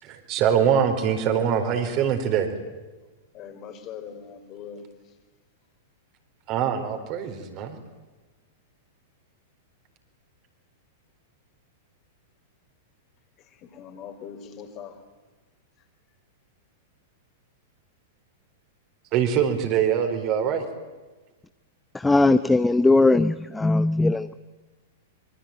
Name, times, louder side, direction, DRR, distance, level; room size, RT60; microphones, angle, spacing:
voice 1, 0.0-2.5 6.5-7.8 19.1-20.6, right 8 dB, 40° right, 4.3 m, -23 dB
voice 2, 3.3-4.8 13.8-14.9, left 7 dB, 35° left, 4.2 m, -40 dB
voice 3, 21.9-24.3, left 2 dB, 10° left, 0.8 m, -19 dB
25.5 x 24.5 x 9.1 m
figure-of-eight pair, 100°, 0 cm